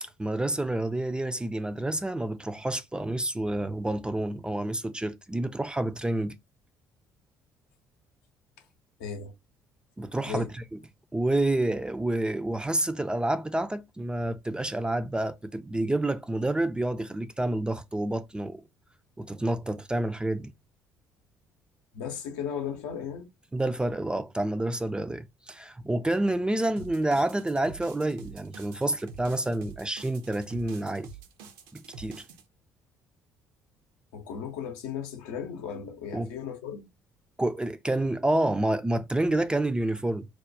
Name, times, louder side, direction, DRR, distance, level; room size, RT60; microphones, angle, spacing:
voice 1, 0.0-6.3 10.0-10.6 11.1-18.6 19.2-20.5 23.5-31.1 31.7-32.3 36.1-36.3 37.4-40.3, right 1 dB, 10° right, 0.3 m, -28 dB
voice 2, 9.0-9.3 10.3-10.5 21.9-23.3 34.1-36.9, left 7 dB, 65° left, 0.6 m, -36 dB
sound 1, 26.8-32.4, right 5 dB, 60° right, 0.5 m, -47 dB
4.5 x 2.2 x 2.6 m
figure-of-eight pair, 50°, 9 cm